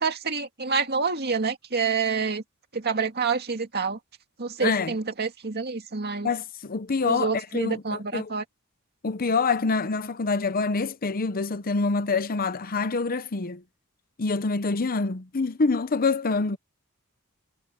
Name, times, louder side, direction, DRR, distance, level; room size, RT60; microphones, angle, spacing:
voice 1, 0.0-2.4 2.7-4.0 4.4-6.3 7.0-8.4, right 5 dB, 50° right, 2.3 m, -27 dB
voice 2, 4.6-4.9 6.2-8.3 9.0-13.6 14.2-16.6, left 4 dB, 40° left, 0.8 m, -26 dB
head